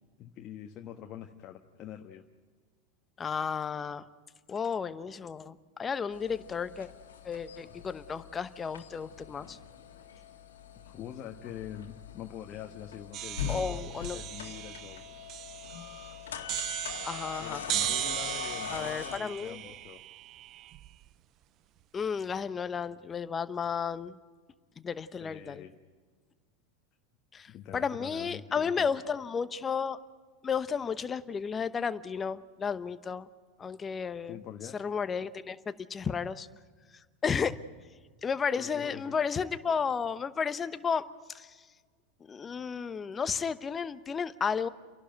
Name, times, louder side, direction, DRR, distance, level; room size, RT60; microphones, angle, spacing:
voice 1, 0.2-2.2 10.8-15.0 17.4-20.0 25.2-25.8 27.5-29.0 34.3-34.8 38.5-39.2, left 10 dB, 40° left, 3 dB, 1.4 m, -45 dB
voice 2, 3.2-4.0 4.5-6.9 7.2-9.6 13.5-14.2 17.0-17.6 18.7-19.7 21.9-24.2 24.8-25.6 27.3-30.0 30.4-33.3 33.6-34.4 34.8-35.6 35.9-36.5 37.2-37.5 38.2-41.0 41.3-41.6 42.3-44.7, left 6 dB, 25° left, 13 dB, 1.0 m, -33 dB
sound 1, 6.1-19.2, left 8 dB, 85° left, 1.9 m, -42 dB
sound 2, 13.1-21.1, right 13 dB, 45° right, 0.5 m, -37 dB
30.0 x 12.0 x 9.1 m, 1.5 s
hypercardioid pair, 95°, 0 cm